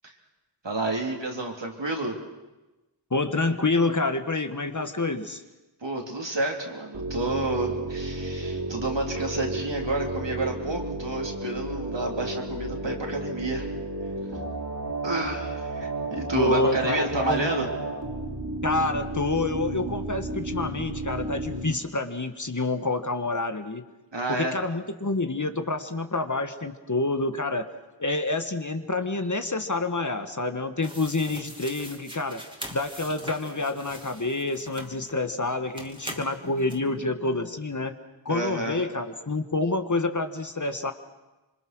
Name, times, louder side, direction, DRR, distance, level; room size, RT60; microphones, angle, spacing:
voice 1, 0.6-2.2 5.8-13.7 15.0-17.7 24.1-24.6 38.3-38.8, right 2 dB, 70° right, 1 dB, 3.7 m, -30 dB
voice 2, 3.1-5.4 16.3-17.6 18.6-23.8 24.3-27.7 28.0-32.4 32.7-37.9 38.2-40.9, left 2 dB, 40° left, 8 dB, 1.5 m, -28 dB
sound 1, 6.9-21.7, right 1 dB, 50° right, 4.4 m, -33 dB
sound 2, 30.8-35.2 35.7-36.8, equal, 10° right, 3.1 m, -42 dB
26.0 x 24.0 x 6.2 m, 1.1 s
wide cardioid pair, 45°, 46 cm